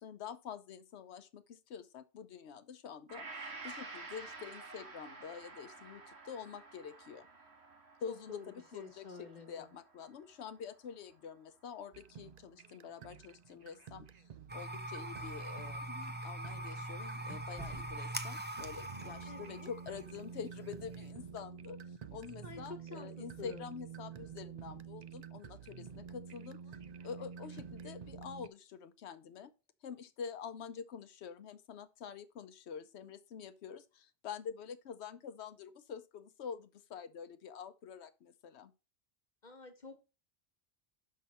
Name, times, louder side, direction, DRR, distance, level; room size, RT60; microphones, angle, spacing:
voice 1, 0.0-7.3 8.0-14.1 14.5-26.6 27.0-29.5 29.8-38.7, left 7 dB, 85° left, 1.0 m, -47 dB
Gong, 3.1-11.4 11.9-12.0, right 3 dB, 75° right, 1.8 m, -51 dB
voice 2, 8.1-9.8 19.3-19.7 22.4-23.7 39.4-40.0, left 4 dB, 45° left, 1.1 m, -49 dB
sound 1, 11.9-28.5, right 7 dB, 55° right, 0.5 m, -50 dB
sound 2, 14.5-21.1, right 1 dB, 10° right, 0.6 m, -43 dB
6.3 x 5.7 x 4.1 m
omnidirectional pair, 1.1 m